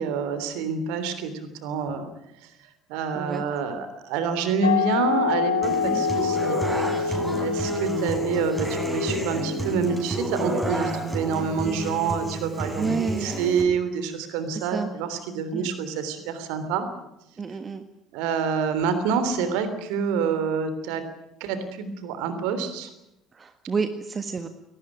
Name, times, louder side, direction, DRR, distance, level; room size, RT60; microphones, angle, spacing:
voice 1, 0.0-2.0 2.9-16.9 18.1-21.0 21.4-22.9, right 6 dB, 60° right, 11 dB, 3.3 m, -27 dB
sound 1, 4.6-10.0, left 6 dB, 75° left, 1.8 m, -27 dB
Human voice / Acoustic guitar, 5.6-13.6, right 1 dB, 10° right, 7.6 m, -30 dB
voice 2, 12.8-13.3 14.7-14.9 15.5-15.7 17.4-17.8 23.3-24.5, right 5 dB, 30° right, 9 dB, 1.6 m, -29 dB
21.5 x 19.0 x 9.0 m, 0.85 s
figure-of-eight pair, 55°, 0 cm